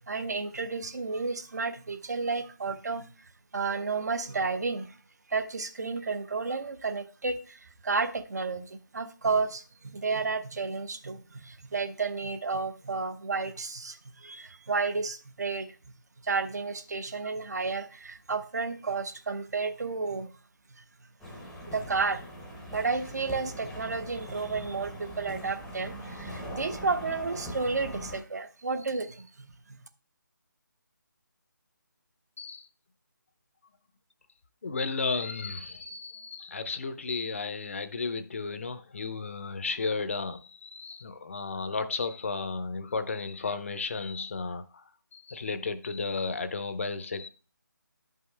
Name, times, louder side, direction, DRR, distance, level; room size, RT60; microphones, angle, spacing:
voice 1, 0.0-5.0 5.3-15.7 16.2-20.3 20.8-20.9 21.7-22.2 22.7-29.8, right 4 dB, 55° right, 10 dB, 0.8 m, -32 dB
sound 1, 21.2-28.2, equal, ahead, 0.7 m, -41 dB
voice 2, 32.4-32.7 34.6-44.8 45.1-47.3, left 4 dB, 40° left, 11 dB, 0.6 m, -33 dB
10.5 x 5.6 x 3.3 m, 0.35 s
figure-of-eight pair, 165°, 11 cm